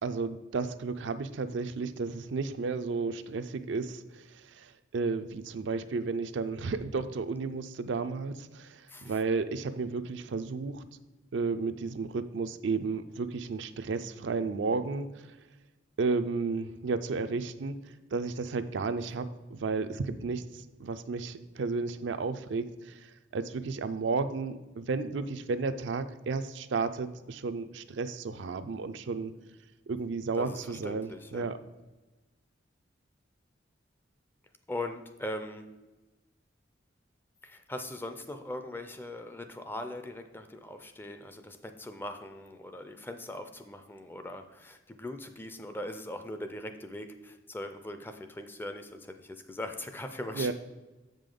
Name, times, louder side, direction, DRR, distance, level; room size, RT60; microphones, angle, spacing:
voice 1, 0.0-10.8 11.3-15.3 16.0-17.8 18.1-29.3 29.9-31.6 50.3-50.5, right 4 dB, 70° right, 10 dB, 0.4 m, -33 dB
voice 2, 30.4-31.5 34.7-35.7 37.4-50.5, left 1 dB, 10° left, 7 dB, 0.4 m, -40 dB
7.5 x 5.2 x 3.8 m, 1.1 s
head